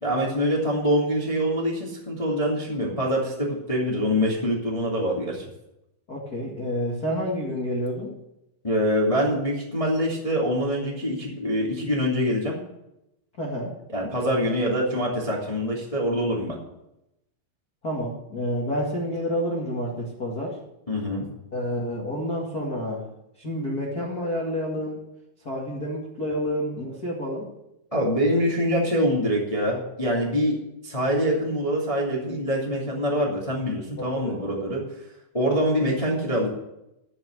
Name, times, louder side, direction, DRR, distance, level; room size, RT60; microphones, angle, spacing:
voice 1, 0.0-5.4 8.6-12.6 13.9-16.6 20.9-21.2 27.9-34.8 35.3-36.5, equal, 20° left, -3 dB, 0.8 m, -25 dB
voice 2, 6.1-8.1 13.4-13.7 17.8-20.6 21.5-23.1 23.4-25.0 25.4-27.5 34.0-34.4, equal, 75° left, -4 dB, 0.8 m, -29 dB
14.0 x 6.1 x 7.8 m, 0.86 s
omnidirectional pair, 5.8 m